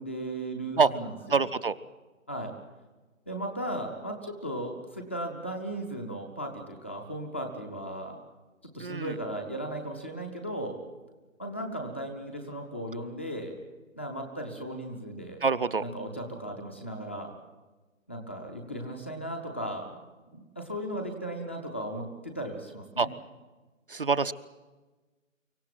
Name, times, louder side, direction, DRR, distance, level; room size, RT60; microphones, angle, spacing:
voice 1, 0.0-1.4 2.3-2.5 3.3-8.2 8.7-10.8 11.4-13.6 13.9-15.4 15.8-17.3 18.1-20.0 20.3-23.1, right 1 dB, 10° left, 3 dB, 0.7 m, -36 dB
voice 2, 1.3-1.7 8.8-9.1 15.4-15.8 23.0-23.1 23.9-24.3, right 5 dB, 45° right, 11 dB, 0.7 m, -25 dB
25.0 x 16.0 x 9.1 m, 1.2 s
figure-of-eight pair, 150°, 40 cm